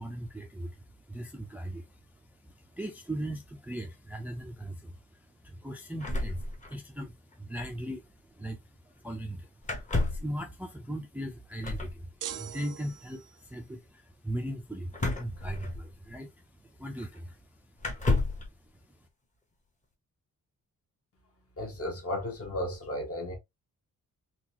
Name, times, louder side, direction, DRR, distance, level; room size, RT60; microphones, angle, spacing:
voice 1, 0.0-19.1, right 1 dB, 5° right, 0.4 m, -39 dB
sound 1, 6.0-7.1 7.3-7.4 7.6-7.8 9.6-10.4 11.6-12.0 14.9-16.1 17.0-17.1 17.8-18.5, left 2 dB, 20° left, 0.9 m, -31 dB
sound 2, 12.2-13.5, right 10 dB, 65° right, 0.5 m, -41 dB
voice 2, 21.6-23.3, left 1 dB, 45° left, 1.2 m, -34 dB
3.9 x 2.5 x 2.8 m
wide cardioid pair, 145°, 33 cm